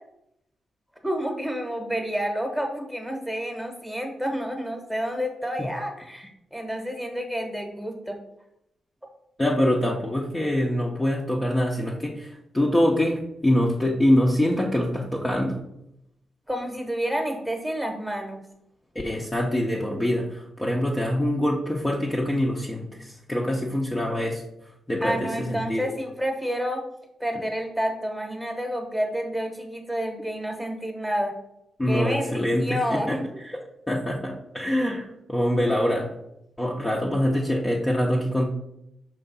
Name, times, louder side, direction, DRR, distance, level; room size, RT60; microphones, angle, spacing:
voice 1, 1.0-8.2 16.5-18.4 25.0-26.8 27.2-31.3 31.9-33.2, equal, 5° right, 3 dB, 1.2 m, -29 dB
voice 2, 9.4-15.6 19.0-24.4 24.9-25.9 31.8-33.2 33.5-33.6 33.9-36.1 36.6-38.5, left 1 dB, 15° left, -3 dB, 0.8 m, -24 dB
5.7 x 3.2 x 5.4 m, 0.82 s
cardioid pair, 100°, 0 cm